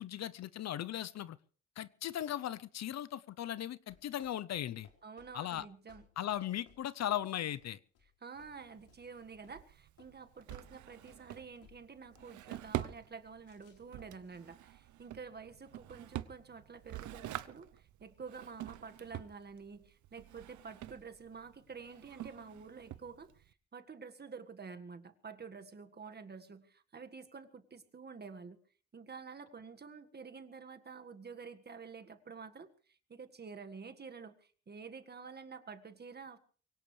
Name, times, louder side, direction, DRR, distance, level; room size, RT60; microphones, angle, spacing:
voice 1, 0.0-1.4 1.8-4.9 5.3-5.6 6.2-7.8, left 11 dB, 60° left, 17 dB, 0.7 m, -38 dB
sound 1, 3.9-9.7 10.0-10.2 10.5-11.4 11.6-12.5 13.0-13.2 13.5-14.5, left 6 dB, 85° left, 4.1 m, -65 dB
voice 2, 5.0-6.0 8.2-28.6 28.9-36.4, right 5 dB, 35° right, 8 dB, 1.7 m, -49 dB
Drawer open or close, 8.4-23.5, right 13 dB, 75° right, 0.8 m, -46 dB
23.0 x 17.5 x 3.3 m, 0.42 s
cardioid pair, 90°, 30 cm